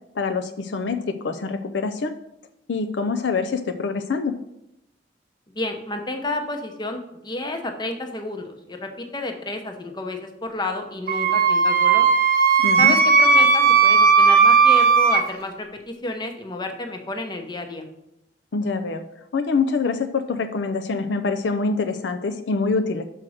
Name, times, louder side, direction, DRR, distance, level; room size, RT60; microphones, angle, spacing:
voice 1, 0.2-2.2 2.7-4.4 12.6-12.9 18.5-19.0 19.3-23.0, left 4 dB, 70° left, 8 dB, 0.5 m, -25 dB
voice 2, 5.5-7.0 7.2-12.1 12.8-17.8, left 2 dB, 25° left, 5 dB, 0.8 m, -31 dB
Wind instrument woodwind instrument, 11.1-15.2, right 5 dB, 55° right, 0.7 m, -16 dB
6.3 x 4.5 x 6.3 m, 0.84 s
head